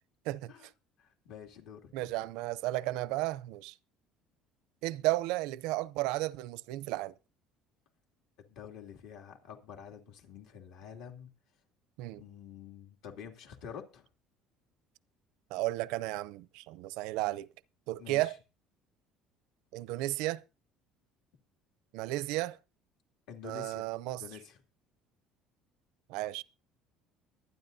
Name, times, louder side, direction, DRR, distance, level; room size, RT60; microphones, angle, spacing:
voice 1, 1.0-1.9 8.5-11.3 12.2-14.1 18.0-18.4 23.3-23.9 24.2-24.6, left 8 dB, 70° left, 2.6 m, -48 dB
voice 2, 1.9-3.7 4.8-7.1 12.0-12.2 15.5-17.5 17.9-18.4 19.7-20.4 21.9-22.6 23.4-24.2 26.1-26.4, right 18 dB, 80° right, 0.5 m, -33 dB
23.5 x 9.4 x 2.7 m
cardioid pair, 150°, 0 cm